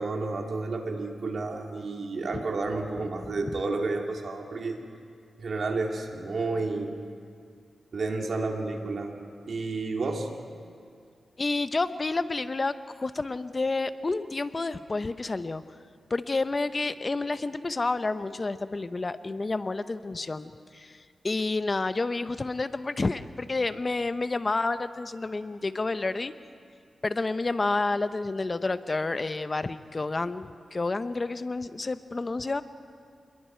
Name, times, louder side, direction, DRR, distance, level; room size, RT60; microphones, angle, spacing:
voice 1, 0.0-4.8 5.4-6.9 7.9-9.1 9.5-10.3, right 3 dB, 70° right, 2 dB, 2.5 m, -31 dB
voice 2, 11.4-15.6 16.1-26.3 27.0-32.6, left 3 dB, 40° left, 12 dB, 0.9 m, -30 dB
27.5 x 22.0 x 4.6 m, 2.2 s
cardioid pair, 55°, 0 cm